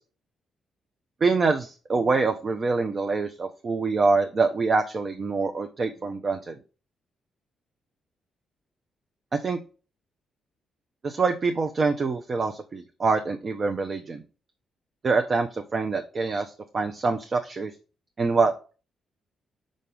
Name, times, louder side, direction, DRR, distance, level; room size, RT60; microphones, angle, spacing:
voice 1, 1.2-6.5 9.3-9.6 11.0-14.2 15.0-17.7 18.2-18.5, right 4 dB, 45° right, 5 dB, 0.7 m, -25 dB
5.4 x 5.1 x 3.7 m, 0.34 s
hypercardioid pair, 45°, 0 cm